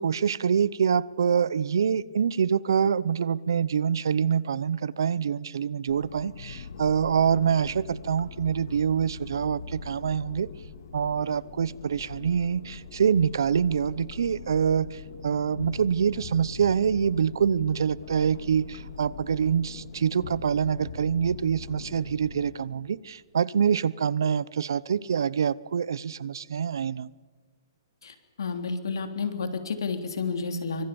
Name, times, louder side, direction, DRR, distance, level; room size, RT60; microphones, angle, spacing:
voice 1, 0.0-10.5 10.9-27.1, right 7 dB, 70° right, 21 dB, 0.8 m, -25 dB
sound 1, 5.9-22.5, left 6 dB, 50° left, 2.2 m, -42 dB
voice 2, 28.0-30.9, left 4 dB, 90° left, 7 dB, 3.3 m, -31 dB
25.0 x 24.5 x 7.0 m, 1.4 s
hypercardioid pair, 180°, 2 cm